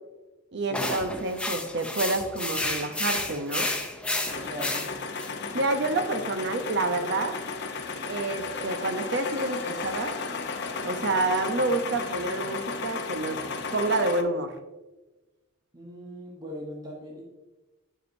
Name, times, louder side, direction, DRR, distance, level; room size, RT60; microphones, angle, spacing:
voice 1, 0.5-3.7 5.5-7.4 8.1-10.2 10.8-13.4 13.7-14.5, right 2 dB, 60° right, 8 dB, 0.6 m, -28 dB
sound 1, 0.7-5.3, left 2 dB, 5° left, 0.4 m, -31 dB
sound 2, 4.3-14.2, left 4 dB, 55° left, 0.6 m, -34 dB
voice 2, 4.4-4.9 11.1-11.2 15.7-17.2, equal, 20° right, -3 dB, 1.1 m, -40 dB
9.6 x 4.9 x 2.6 m, 1.1 s
head